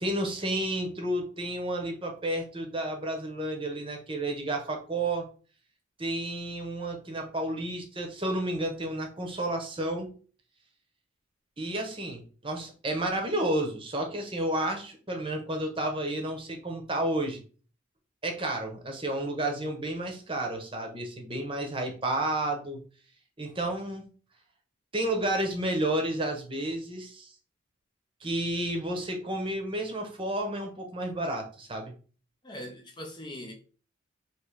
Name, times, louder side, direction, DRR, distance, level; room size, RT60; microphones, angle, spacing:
voice 1, 0.0-5.3 6.0-10.1 11.6-17.4 18.2-22.8 23.4-24.0 24.9-27.3 28.2-31.9, right 1 dB, 25° right, 0.9 m, -31 dB
voice 2, 32.4-33.5, left 1 dB, 20° left, 0.6 m, -41 dB
3.3 x 3.1 x 4.7 m
head